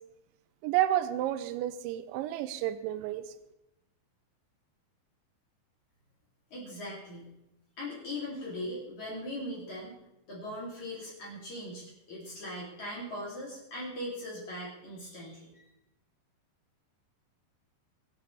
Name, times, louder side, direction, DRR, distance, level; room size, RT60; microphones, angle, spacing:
voice 1, 0.6-3.2, right 13 dB, 85° right, 12 dB, 3.0 m, -30 dB
voice 2, 6.5-7.3 7.8-9.9 10.3-15.6, left 1 dB, 45° left, -5 dB, 3.9 m, -40 dB
23.5 x 8.8 x 3.3 m, 0.89 s
omnidirectional pair, 5.3 m